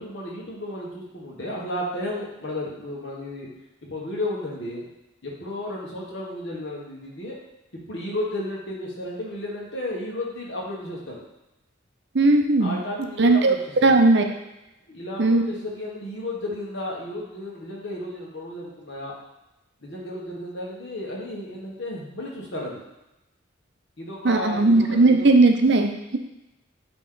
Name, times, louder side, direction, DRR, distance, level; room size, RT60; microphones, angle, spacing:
voice 1, 0.0-3.5 3.9-4.8 5.2-7.4 7.9-11.2 12.6-13.7 14.0-14.1 14.9-19.1 19.8-22.8 24.0-25.3, left 1 dB, 60° left, -3 dB, 1.5 m, -33 dB
voice 2, 12.1-12.8 13.2-13.5 13.8-14.2 15.2-15.4 24.2-26.2, right 2 dB, 55° right, 5 dB, 0.6 m, -17 dB
8.4 x 3.1 x 3.9 m, 0.94 s
head